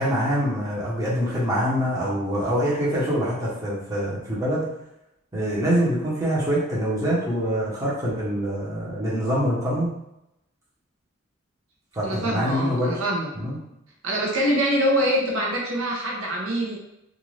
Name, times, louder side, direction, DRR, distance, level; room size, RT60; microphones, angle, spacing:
voice 1, 0.0-4.7 5.3-9.9 11.9-12.9 13.3-13.6, equal, 15° right, -8 dB, 0.9 m, -24 dB
voice 2, 12.0-13.3 14.0-16.8, equal, 85° right, -2 dB, 0.7 m, -24 dB
2.5 x 2.4 x 3.2 m, 0.83 s
head